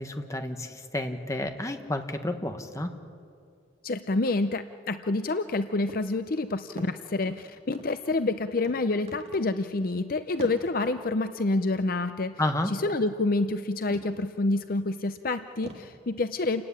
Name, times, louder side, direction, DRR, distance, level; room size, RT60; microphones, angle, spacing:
voice 1, 0.0-2.9 12.4-12.7, left 1 dB, 15° left, 6 dB, 1.4 m, -31 dB
voice 2, 3.8-12.3 12.7-16.6, left 2 dB, 50° left, 10 dB, 0.6 m, -28 dB
sound 1, 5.9-6.1 6.4-7.4 7.7-8.3 8.6-8.8 9.1-9.5 9.7-9.9 10.4-10.6 13.0-13.2 13.9-14.3 14.8-14.9 15.6-15.9, right 1 dB, 35° right, 2.1 m, -45 dB
28.5 x 15.5 x 9.9 m, 2.4 s
head